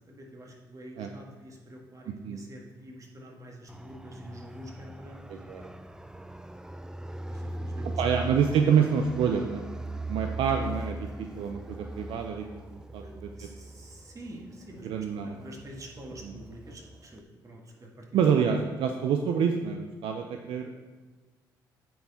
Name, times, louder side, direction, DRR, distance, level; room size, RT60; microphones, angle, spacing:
voice 1, 0.0-5.4 7.1-7.9 13.0-13.1 13.4-18.1, right 1 dB, 35° right, 0 dB, 1.8 m, -46 dB
voice 2, 2.1-2.4 5.3-5.6 8.0-9.7 10.1-13.5 14.8-15.5 16.2-16.4 18.1-20.8, right 7 dB, 75° right, 4 dB, 0.5 m, -27 dB
Fixed-wing aircraft airplane, 3.7-17.2, right 1 dB, 5° right, 0.4 m, -40 dB
9.2 x 4.6 x 4.2 m, 1.3 s
supercardioid pair, 65°, 9 cm